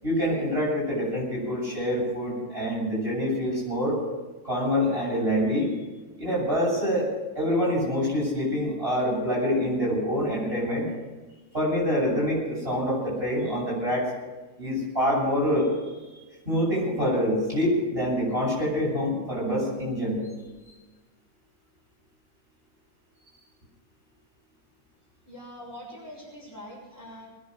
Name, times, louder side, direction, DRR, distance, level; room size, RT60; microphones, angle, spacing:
voice 1, 0.0-4.0 4.4-5.7 6.1-7.1 7.3-10.9 11.5-14.1 14.6-15.7 16.4-20.2, equal, 40° right, -5 dB, 7.9 m, -26 dB
voice 2, 25.2-27.3, equal, 10° left, -5 dB, 6.4 m, -43 dB
21.5 x 10.5 x 6.5 m, 1.2 s
omnidirectional pair, 1.6 m